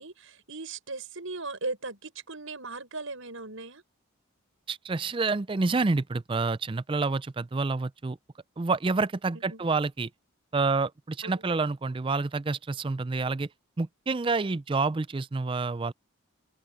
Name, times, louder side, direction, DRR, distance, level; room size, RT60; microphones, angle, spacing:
voice 1, 0.0-3.8 9.3-9.8 11.2-11.4, right 3 dB, 70° right, 5.7 m, -38 dB
voice 2, 4.7-8.2 8.6-10.1 10.5-13.5 13.8-15.9, right 3 dB, 25° right, 0.4 m, -28 dB
open air
head